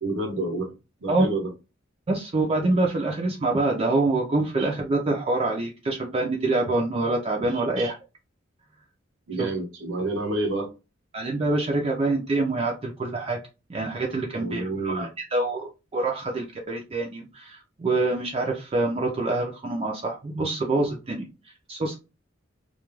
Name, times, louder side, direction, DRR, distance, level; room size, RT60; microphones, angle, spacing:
voice 1, 0.0-1.5 4.6-4.7 7.8-7.9 9.3-10.7 14.4-15.1, right 2 dB, 85° right, 3 dB, 0.7 m, -29 dB
voice 2, 2.1-7.9 9.4-9.5 11.1-13.4 13.7-22.0, right 2 dB, 30° right, -1 dB, 0.4 m, -26 dB
2.3 x 2.2 x 3.0 m, 0.29 s
head